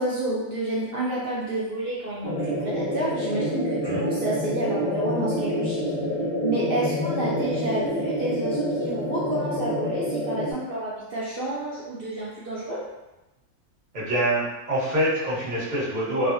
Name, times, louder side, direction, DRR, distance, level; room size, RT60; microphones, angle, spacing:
voice 1, 0.0-5.8 6.4-12.8, right 2 dB, 80° right, -7 dB, 0.5 m, -29 dB
sound 1, 2.2-10.5, equal, 10° right, 0.4 m, -27 dB
voice 2, 13.9-16.3, right 1 dB, 35° right, -9 dB, 0.9 m, -25 dB
3.1 x 2.0 x 2.5 m, 1.0 s
omnidirectional pair, 1.6 m